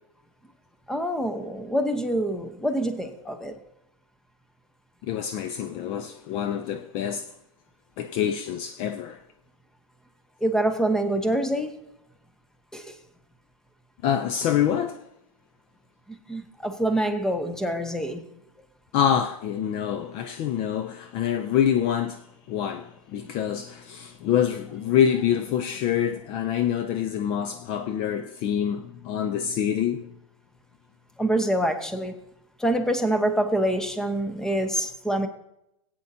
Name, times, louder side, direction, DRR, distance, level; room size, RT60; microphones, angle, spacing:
voice 1, 0.9-3.5 10.4-11.7 12.7-12.8 16.3-18.2 31.2-32.1 32.6-35.3, right 1 dB, 5° left, 0.8 m, -25 dB
voice 2, 5.1-7.3 8.0-9.2 14.0-15.0 18.9-22.2 22.5-30.1, left 9 dB, 35° left, 0.5 m, -26 dB
21.0 x 8.7 x 2.7 m
hypercardioid pair, 130°, 17 cm